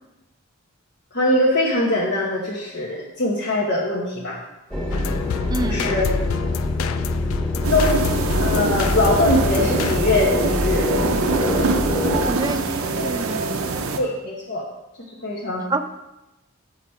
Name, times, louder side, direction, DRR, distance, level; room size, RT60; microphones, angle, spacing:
voice 1, 1.1-4.4 5.6-6.1 7.7-10.9 13.9-14.6 15.2-15.6, left 1 dB, 55° left, -4 dB, 1.0 m, -22 dB
sound 1, 4.7-12.3, left 1 dB, 5° left, 1.3 m, -25 dB
sound 2, 4.9-10.0, left 6 dB, 75° left, 0.4 m, -27 dB
voice 2, 5.5-5.9 12.3-13.5 15.7-15.8, right 2 dB, 20° right, 9 dB, 0.4 m, -27 dB
sound 3, 7.6-14.0, right 3 dB, 85° right, 0.7 m, -24 dB
6.9 x 5.8 x 4.4 m, 0.97 s
head